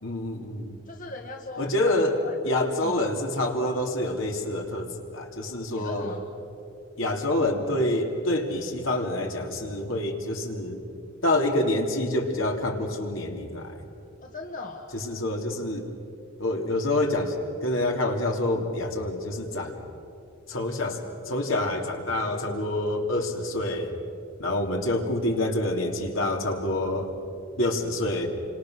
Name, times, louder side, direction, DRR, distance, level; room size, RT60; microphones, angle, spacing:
voice 1, 0.0-0.7 1.6-2.2 2.4-6.1 7.0-10.8 11.2-13.8 14.9-15.8 16.4-17.3 17.6-19.8 20.5-21.0 21.2-23.9 24.4-27.1 27.6-28.3, left 1 dB, 70° left, 2 dB, 3.2 m, -27 dB
voice 2, 0.9-3.0 5.7-6.2 14.2-14.9, left 2 dB, 40° left, 2 dB, 1.6 m, -39 dB
29.5 x 25.5 x 6.5 m, 2.6 s
head